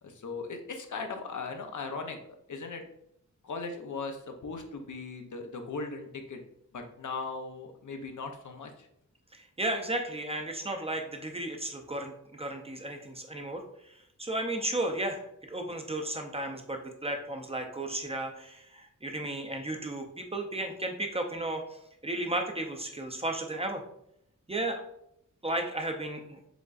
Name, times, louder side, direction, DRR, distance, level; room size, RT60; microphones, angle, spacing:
voice 1, 0.0-2.2 2.5-2.8 3.4-6.4 6.7-8.9, left 4 dB, 70° left, 5 dB, 0.7 m, -38 dB
voice 2, 9.3-15.2 15.5-23.8 24.5-24.8 25.4-26.4, right 1 dB, 20° right, 3 dB, 0.6 m, -34 dB
5.1 x 3.6 x 2.4 m, 0.75 s
wide cardioid pair, 100°, 31 cm